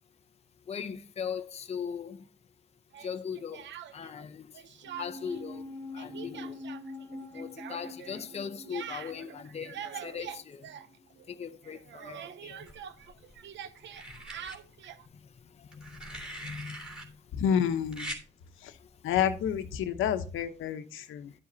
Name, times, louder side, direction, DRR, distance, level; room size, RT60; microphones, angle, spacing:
voice 1, 0.7-2.2 3.0-4.5 5.0-5.7 5.9-6.6 7.3-10.7 11.3-12.7 15.6-16.8, left 7 dB, 30° left, 0.7 m, -39 dB
Speech, 2.9-4.2 4.5-5.4 5.7-11.4 11.6-15.1, right 9 dB, 65° right, 0.7 m, -45 dB
sound 1, 4.8-11.4 11.6-11.7, left 2 dB, 15° left, 1.9 m, -45 dB
sound 2, 12.7-13.3 13.9-14.6 15.7-17.1 17.9-18.2 19.6-19.8, right 1 dB, 5° right, 3.1 m, -42 dB
voice 2, 17.3-18.1 18.6-18.8 19.0-21.3, left 8 dB, 85° left, 1.1 m, -29 dB
11.5 x 7.9 x 2.8 m
cardioid pair, 90°, 20 cm